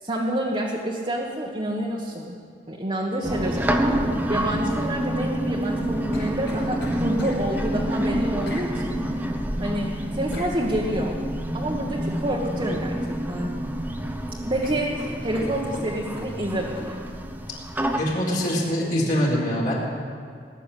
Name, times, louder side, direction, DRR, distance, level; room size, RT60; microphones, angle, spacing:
voice 1, 0.0-2.4 2.7-3.9 4.3-8.9 9.6-11.2 11.5-13.0 13.3-13.5 14.4-17.0, right 1 dB, 30° right, -3 dB, 1.5 m, -28 dB
sound 1, 3.2-18.0, right 1 dB, 10° right, 1.0 m, -28 dB
sound 2, 5.6-7.4 8.5-8.7 10.3-10.5 12.5-12.8 13.2-13.8 14.1-14.3 14.6-16.3 16.8-16.9, left 1 dB, 85° left, 5.3 m, -40 dB
voice 2, 17.9-19.7, equal, 50° left, -6 dB, 4.1 m, -23 dB
19.5 x 7.0 x 9.9 m, 2.3 s
head